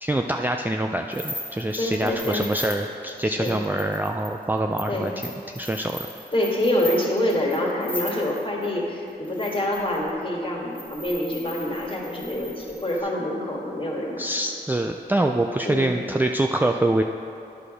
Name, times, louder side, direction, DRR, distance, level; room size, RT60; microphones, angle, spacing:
voice 1, 0.0-5.1 5.5-6.1 14.2-17.0, right 1 dB, 10° right, 3 dB, 0.4 m, -25 dB
sound 1, 1.1-8.7 9.2-10.1 10.7-13.0, left 1 dB, 10° left, 1.7 m, -39 dB
voice 2, 1.8-2.4 3.2-3.5 4.9-5.1 6.3-14.3 15.7-15.9, left 1 dB, 30° left, -2 dB, 1.8 m, -26 dB
10.5 x 4.8 x 5.0 m, 2.6 s
cardioid pair, 50°, 18 cm